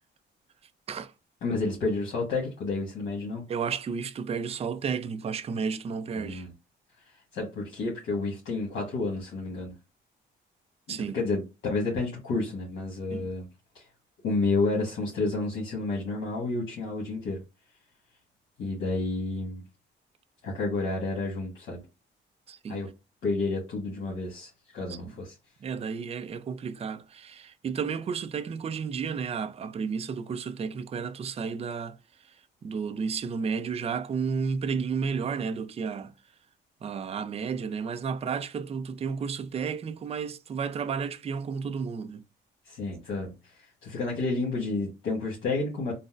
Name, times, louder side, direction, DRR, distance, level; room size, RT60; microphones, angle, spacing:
voice 1, 1.4-3.4 6.1-6.5 7.0-9.7 10.9-13.5 13.7-13.9 14.2-17.4 18.6-19.6 20.4-21.8 22.7-22.9 23.2-25.3 42.6-45.9, left 3 dB, 75° left, 1.2 m, -30 dB
voice 2, 3.5-6.5 10.9-11.2 13.1-13.3 22.5-22.8 24.9-25.1 25.6-32.0 32.2-32.3 32.6-36.1 36.8-42.2, right 6 dB, 30° right, 0.4 m, -32 dB
3.8 x 2.0 x 2.4 m
cardioid pair, 90°, 20 cm